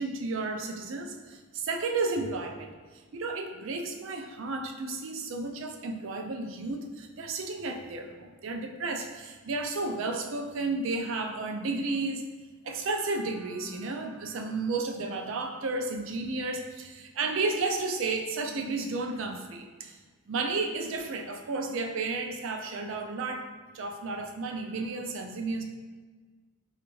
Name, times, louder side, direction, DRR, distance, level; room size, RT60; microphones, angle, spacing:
voice 1, 0.0-2.7 3.1-12.2 12.6-20.0 20.3-25.6, right 3 dB, 65° right, 4 dB, 0.4 m, -32 dB
4.9 x 2.4 x 3.0 m, 1.4 s
head